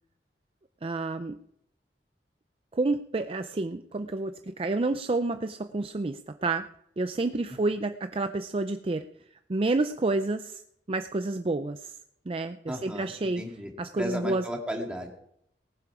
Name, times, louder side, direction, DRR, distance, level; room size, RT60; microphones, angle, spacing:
voice 1, 0.8-1.4 2.7-6.7 7.0-9.0 9.5-10.6 10.9-12.0 12.3-13.4 13.8-14.4, right 2 dB, 30° right, 9 dB, 0.5 m, -29 dB
voice 2, 12.7-13.1 13.4-15.1, equal, 5° right, 1 dB, 2.3 m, -34 dB
19.0 x 11.5 x 4.8 m, 0.75 s
head